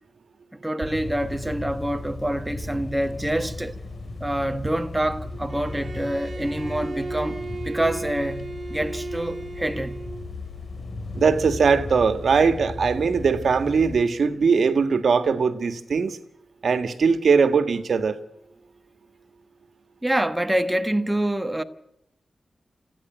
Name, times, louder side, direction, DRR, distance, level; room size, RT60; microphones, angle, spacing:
voice 1, 0.6-3.8 4.2-10.0 20.0-21.6, right 1 dB, 10° right, 1.3 m, -26 dB
sound 1, 0.8-14.0, left 2 dB, 50° left, 2.4 m, -36 dB
Bowed string instrument, 5.5-10.3, right 3 dB, 50° right, 1.6 m, -35 dB
voice 2, 11.1-16.2 16.6-18.2, right 5 dB, 70° right, 1.7 m, -20 dB
29.0 x 10.5 x 9.2 m
wide cardioid pair, 115°, 0 cm